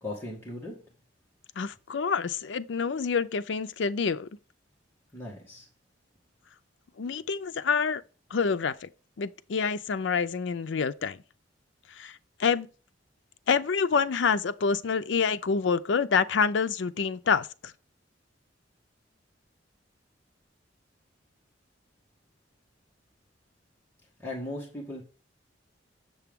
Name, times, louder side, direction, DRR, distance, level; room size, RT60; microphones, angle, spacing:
voice 1, 0.0-0.8 5.1-5.7 24.2-25.0, left 1 dB, 15° left, 1.8 m, -38 dB
voice 2, 1.6-4.3 7.0-8.0 8.3-8.9 9.2-11.2 11.9-12.7 13.5-17.7, left 5 dB, 70° left, 0.5 m, -27 dB
7.0 x 6.7 x 3.6 m
head